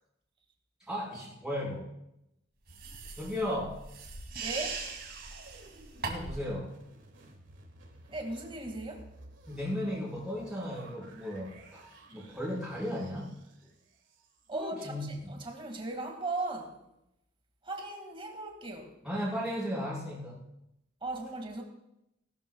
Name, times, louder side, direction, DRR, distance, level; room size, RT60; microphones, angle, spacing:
voice 1, 0.9-1.9 3.2-3.8 6.0-6.7 9.5-11.8 12.1-13.4 14.5-15.1 19.0-20.4, equal, 5° right, -9 dB, 4.4 m, -35 dB
sound 1, 2.7-6.5, right 4 dB, 55° right, 2.6 m, -40 dB
voice 2, 4.4-4.8 8.1-9.1 14.5-16.8 17.6-19.0 21.0-21.6, right 2 dB, 30° right, 3 dB, 2.0 m, -37 dB
sound 2, 4.5-14.6 15.2-15.3, right 2 dB, 75° right, 1.8 m, -55 dB
19.0 x 12.5 x 2.3 m, 0.85 s
head